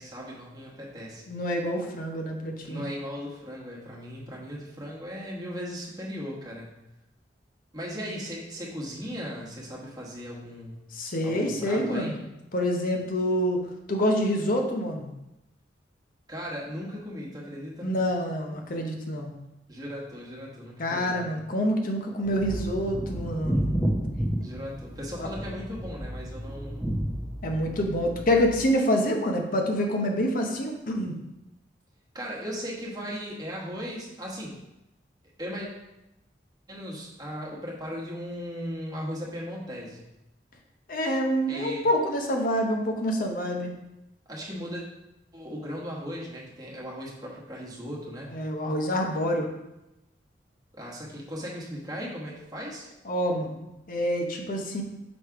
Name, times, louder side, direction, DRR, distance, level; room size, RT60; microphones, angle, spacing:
voice 1, 0.0-1.2 2.6-6.7 7.7-10.8 11.2-12.2 16.3-17.9 19.7-21.4 24.4-26.8 32.1-34.5 35.4-35.7 36.7-40.1 41.5-41.8 44.3-44.8 45.3-48.3 50.7-52.9, equal, 20° right, -4 dB, 1.4 m, -37 dB
voice 2, 1.3-2.9 10.9-12.2 12.5-13.6 13.9-15.1 17.8-19.3 20.8-23.8 25.2-25.3 27.4-31.1 40.9-43.7 48.3-49.5 53.0-54.8, equal, 50° left, 2 dB, 0.8 m, -27 dB
sound 1, 22.2-28.6, equal, ahead, 0.8 m, -31 dB
6.1 x 3.2 x 4.7 m, 0.92 s
head